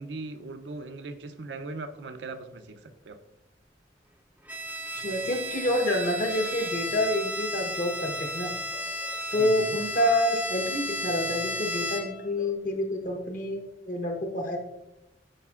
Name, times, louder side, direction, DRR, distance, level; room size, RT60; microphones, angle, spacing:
voice 1, 0.0-3.2 9.4-9.8, right 3 dB, 75° right, 8 dB, 0.6 m, -39 dB
Bowed string instrument, 4.5-12.3, equal, 10° right, 0.5 m, -34 dB
voice 2, 4.9-8.5 9.3-14.6, left 1 dB, 50° left, 2 dB, 1.0 m, -28 dB
Bark / Livestock farm animals working animals, 5.7-6.7 8.1-9.7 11.4-12.5, left 2 dB, 75° left, 1.2 m, -49 dB
10.0 x 4.9 x 2.4 m, 0.94 s
head